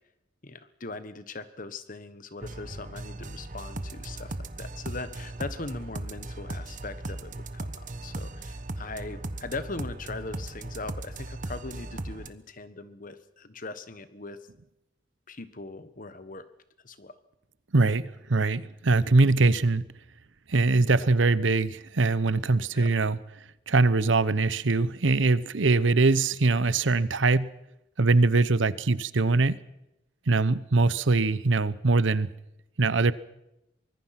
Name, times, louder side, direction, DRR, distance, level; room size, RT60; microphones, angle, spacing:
voice 1, 0.4-14.4 15.3-16.5 16.8-17.2 22.7-22.9, left 3 dB, 45° left, 12 dB, 1.4 m, -40 dB
sound 1, 2.4-12.3, right 2 dB, 45° right, 1.1 m, -38 dB
voice 2, 17.7-19.8 20.5-23.2 23.7-27.5 28.0-29.6 30.3-32.3 32.8-33.1, right 3 dB, 80° right, 17 dB, 0.9 m, -22 dB
24.0 x 21.0 x 5.9 m, 0.87 s
head